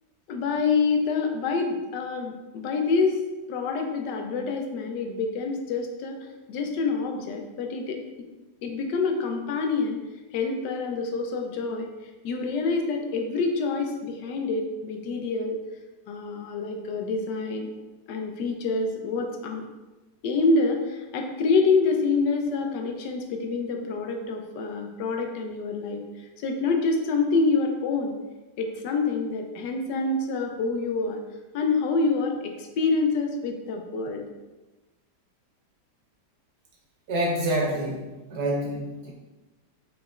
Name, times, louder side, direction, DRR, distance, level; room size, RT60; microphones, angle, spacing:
voice 1, 0.3-3.2 3.5-6.2 6.5-8.0 8.6-10.0 10.3-11.9 12.2-15.6 16.1-17.7 18.1-19.6 20.2-26.0 26.4-28.1 28.6-31.2 31.5-34.3, left 4 dB, 85° left, 3 dB, 1.3 m, -26 dB
voice 2, 37.1-39.1, right 1 dB, 75° right, -2 dB, 1.6 m, -27 dB
5.1 x 4.0 x 2.4 m, 1.1 s
omnidirectional pair, 1.8 m